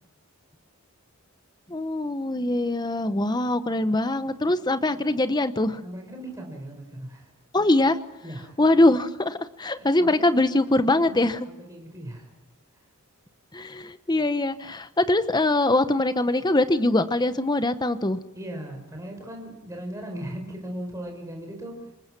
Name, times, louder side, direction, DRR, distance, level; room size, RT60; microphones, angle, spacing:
voice 1, 1.7-5.8 7.5-8.0 8.6-11.5 13.5-18.2, left 2 dB, 20° left, 11 dB, 0.9 m, -23 dB
voice 2, 5.8-7.3 8.2-8.6 9.7-10.3 10.7-12.3 12.7-12.8 18.3-21.9, right 1 dB, 15° right, 2 dB, 4.9 m, -38 dB
26.5 x 21.0 x 6.1 m, 0.96 s
head